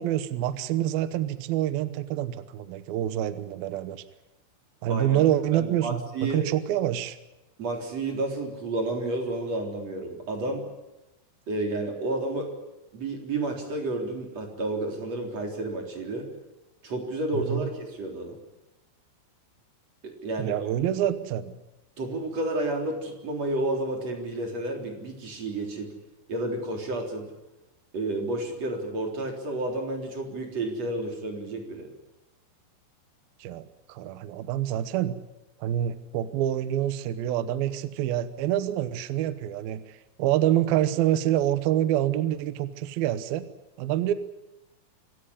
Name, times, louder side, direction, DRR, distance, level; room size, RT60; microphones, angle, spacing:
voice 1, 0.0-4.0 4.8-7.2 17.3-17.7 20.4-21.5 33.4-35.2 35.6-43.5 43.8-44.1, right 12 dB, 75° right, 12 dB, 2.2 m, -27 dB
voice 2, 4.9-5.2 5.5-6.4 7.6-10.7 11.5-12.5 12.9-16.3 16.8-18.4 20.0-20.6 22.0-25.9 26.3-27.3 27.9-31.9, right 2 dB, 35° right, 2 dB, 4.4 m, -31 dB
25.5 x 16.0 x 9.9 m, 1.0 s
omnidirectional pair, 5.7 m